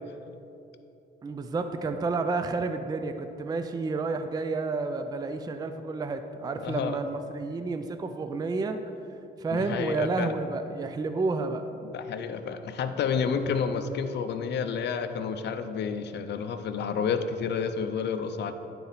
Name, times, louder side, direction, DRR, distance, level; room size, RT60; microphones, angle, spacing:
voice 1, 1.2-8.8 9.4-11.7, right 3 dB, 20° right, 8 dB, 0.4 m, -30 dB
voice 2, 6.6-7.0 9.5-10.4 11.8-18.5, left 6 dB, 60° left, 9 dB, 0.5 m, -30 dB
9.5 x 4.2 x 4.1 m, 2.8 s
cardioid pair, 90°, 20 cm